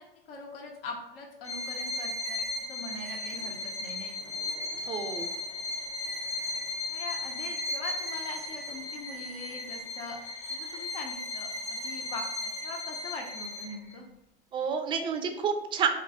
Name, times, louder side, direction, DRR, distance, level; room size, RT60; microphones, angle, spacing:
voice 1, 0.0-2.4 2.7-4.4 6.9-14.1, left 3 dB, 70° left, 1 dB, 0.7 m, -42 dB
Bowed string instrument, 1.4-13.9, left 2 dB, 20° left, 0.6 m, -36 dB
Microwave oven, 2.2-2.5 3.0-9.9, right 5 dB, 85° right, 0.5 m, -49 dB
voice 2, 4.9-5.3 14.5-15.9, right 6 dB, 15° right, 6 dB, 0.3 m, -29 dB
3.0 x 2.6 x 4.0 m, 0.87 s
figure-of-eight pair, 85°, 29 cm